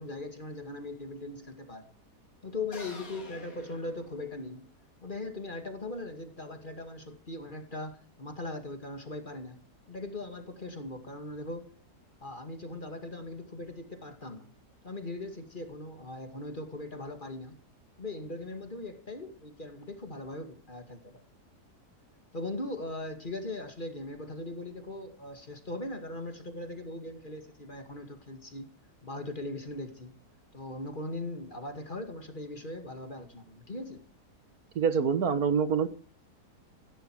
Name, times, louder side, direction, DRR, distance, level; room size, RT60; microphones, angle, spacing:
voice 1, 0.0-2.0 2.4-4.6 5.0-9.6 9.9-11.7 12.2-14.5 14.8-17.6 18.0-21.2 22.3-28.7 29.0-30.1 30.5-34.0, left 2 dB, 30° left, 2.4 m, -39 dB
sound 1, 2.7-4.7, left 3 dB, 60° left, 3.6 m, -49 dB
voice 2, 34.8-35.9, right 6 dB, 65° right, 1.8 m, -25 dB
18.0 x 16.0 x 4.8 m
omnidirectional pair, 1.7 m